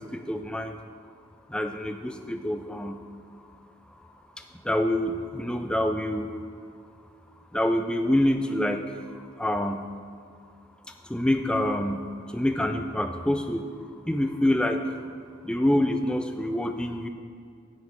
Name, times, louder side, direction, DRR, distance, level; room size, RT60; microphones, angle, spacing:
voice 1, 0.1-0.7 1.5-3.0 4.7-6.3 7.5-8.8 9.4-9.8 11.1-12.0 12.3-13.7 14.1-14.8 15.5-17.1, left 1 dB, 5° left, 6 dB, 0.3 m, -26 dB
7.2 x 6.6 x 5.0 m, 2.3 s
head